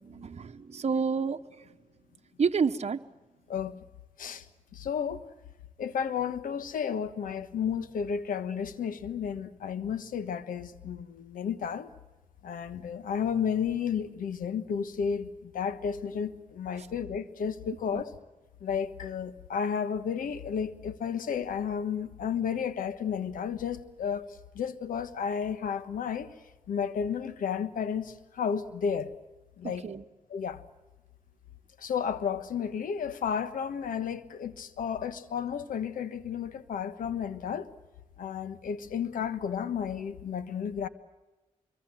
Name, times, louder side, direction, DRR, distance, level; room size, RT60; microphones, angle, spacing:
voice 1, 0.0-1.6 2.4-3.0 17.9-18.0 29.8-30.0, right 5 dB, 50° right, 1.0 m, -29 dB
voice 2, 3.5-3.8 4.2-4.4 4.7-5.2 5.8-11.9 12.4-18.1 18.6-24.2 24.5-26.3 26.7-29.1 29.6-29.8 30.3-30.6 31.8-37.7 38.2-40.9, left 7 dB, 85° left, 1.3 m, -32 dB
25.5 x 23.5 x 7.6 m
cardioid pair, 45°, 14 cm